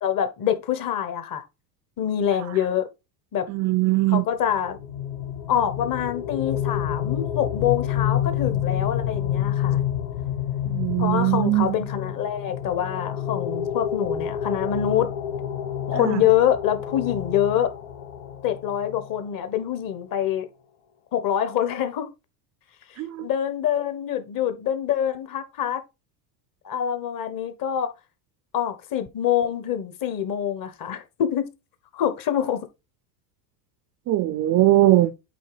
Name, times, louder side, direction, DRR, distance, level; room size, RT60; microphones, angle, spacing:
voice 1, 0.0-1.4 2.0-2.9 3.3-3.4 4.1-4.8 5.5-9.8 11.0-15.1 15.9-17.7 18.4-20.5 21.1-22.1 23.2-25.8 26.6-27.9 28.5-31.5 31.9-32.7, left 10 dB, 40° left, 1.4 m, -25 dB
voice 2, 3.5-4.2 10.7-11.7 15.9-16.2 23.0-23.3 34.1-35.1, right 16 dB, 35° right, 0.4 m, -20 dB
sound 1, 4.4-19.2, left 10 dB, 85° left, 1.5 m, -28 dB
8.5 x 3.4 x 4.9 m
supercardioid pair, 130°, 49 cm